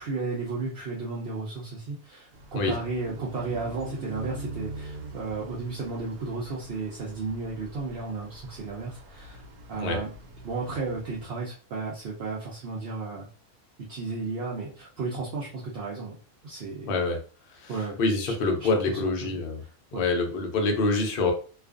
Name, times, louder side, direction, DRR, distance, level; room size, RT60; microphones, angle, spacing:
voice 1, 0.0-9.4 9.7-10.1 10.4-13.3 13.9-16.1 16.4-16.9 17.7-19.4 19.9-20.0, right 3 dB, 60° right, -4 dB, 0.6 m, -34 dB
sound 1, 2.3-11.3, right 2 dB, 85° right, 1.1 m, -43 dB
voice 2, 16.9-17.2 17.5-17.7 18.0-19.6 19.9-21.3, left 3 dB, 60° left, 3 dB, 0.6 m, -26 dB
2.4 x 2.3 x 2.4 m, 0.38 s
omnidirectional pair, 1.5 m